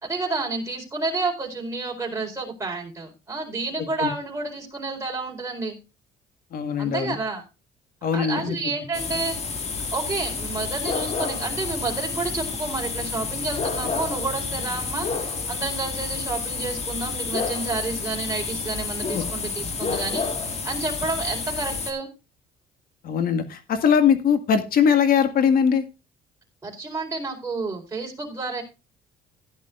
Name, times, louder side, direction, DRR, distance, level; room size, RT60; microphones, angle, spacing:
voice 1, 0.0-5.8 6.8-7.4 8.1-9.4 9.9-20.2 20.6-22.1 26.6-28.6, right 3 dB, 15° right, -2 dB, 4.3 m, -30 dB
voice 2, 3.8-4.1 6.5-7.2 8.0-8.6 19.1-19.2 23.0-25.8, left 7 dB, 60° left, 9 dB, 1.8 m, -21 dB
sound 1, 8.9-21.9, left 4 dB, 40° left, 2.1 m, -29 dB
15.5 x 10.5 x 2.5 m, 0.28 s
cardioid pair, 110°, 17 cm